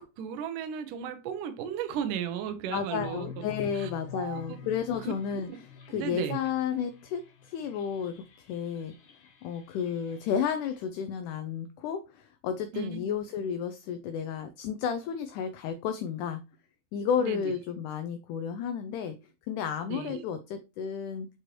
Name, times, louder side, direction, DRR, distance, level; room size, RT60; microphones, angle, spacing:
voice 1, 0.0-3.4 3.7-4.7 5.0-5.1 5.9-6.4 12.7-13.0 17.2-17.4 19.9-20.2, right 8 dB, 70° right, 8 dB, 2.4 m, -35 dB
voice 2, 2.7-5.5 5.9-8.9 9.4-16.4 16.9-19.2 19.5-21.3, left 7 dB, 80° left, 9 dB, 1.8 m, -32 dB
sound 1, 2.9-10.8, left 6 dB, 55° left, 2.0 m, -48 dB
8.1 x 4.5 x 3.0 m, 0.28 s
omnidirectional pair, 4.2 m